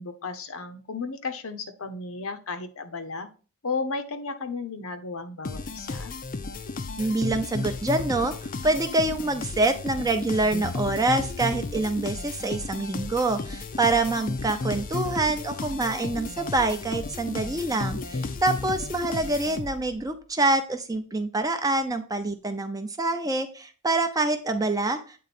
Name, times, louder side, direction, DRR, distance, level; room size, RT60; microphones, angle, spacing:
voice 1, 0.0-3.3 3.6-6.1 17.9-18.3, left 4 dB, 65° left, 9 dB, 0.8 m, -34 dB
sound 1, 5.4-20.0, left 3 dB, 40° left, 0.5 m, -33 dB
voice 2, 7.0-25.2, right 2 dB, 15° right, 7 dB, 0.6 m, -26 dB
8.5 x 3.7 x 4.2 m, 0.37 s
head